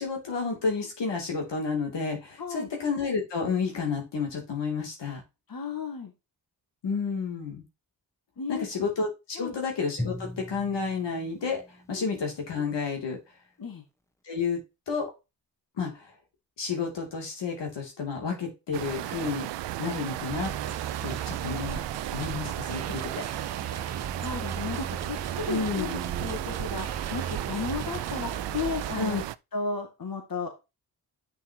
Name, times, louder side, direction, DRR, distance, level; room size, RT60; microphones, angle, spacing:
voice 1, 0.0-5.2 6.8-7.6 8.5-13.2 14.2-15.1 15.8-16.1 16.6-20.5 21.0-21.8 22.1-23.2 25.5-26.0 29.0-29.2, left 5 dB, 80° left, 1 dB, 2.8 m, -31 dB
voice 2, 2.4-2.7 5.5-6.1 8.4-8.7 9.4-9.6 11.9-12.1 13.6-13.8 24.2-29.2 29.5-30.5, left 4 dB, 55° left, 4 dB, 2.1 m, -34 dB
Drum, 10.0-12.4, left 1 dB, 5° left, 1.1 m, -39 dB
sound 1, 18.7-29.4, right 15 dB, 85° right, 0.5 m, -35 dB
sound 2, 20.3-29.0, right 7 dB, 40° right, 0.7 m, -37 dB
8.0 x 5.9 x 2.9 m, 0.25 s
cardioid pair, 50°, 42 cm